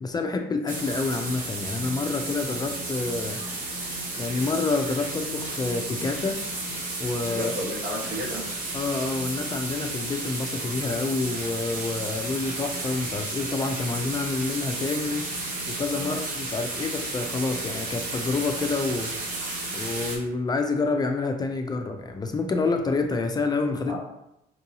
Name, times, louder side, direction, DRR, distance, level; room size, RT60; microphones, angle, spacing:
voice 1, 0.0-3.4 4.2-6.4 7.0-7.5 8.7-15.2 15.7-19.1 19.7-24.0, left 3 dB, 25° left, 5 dB, 0.3 m, -28 dB
sound 1, 0.7-20.2, right 2 dB, 55° right, 0.9 m, -33 dB
voice 2, 7.3-8.5 15.9-16.2 23.9-24.0, equal, 75° right, -2 dB, 1.1 m, -32 dB
4.6 x 2.6 x 2.8 m, 0.86 s
cardioid pair, 110°, 17 cm